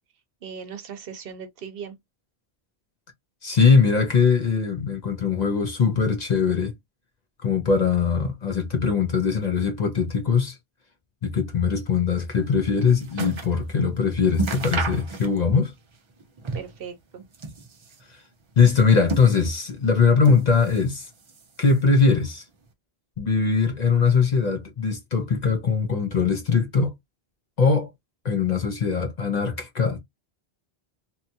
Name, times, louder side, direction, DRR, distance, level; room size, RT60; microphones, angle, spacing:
voice 1, 0.4-2.0 16.5-17.3, right 7 dB, 70° right, 0.8 m, -38 dB
voice 2, 3.4-6.7 7.4-10.6 11.2-15.7 18.1-18.2 18.6-21.1 21.6-22.4 23.2-26.9 27.6-27.9 28.2-30.0, left 5 dB, 50° left, 0.6 m, -21 dB
sound 1, 12.4-13.6 13.9-14.0 14.3-15.6 15.9-16.9 17.2-18.1 18.7-19.7 20.2-20.9 21.2-22.0 22.7-22.8, right 3 dB, 40° right, 0.4 m, -33 dB
2.8 x 2.3 x 2.7 m
omnidirectional pair, 1.0 m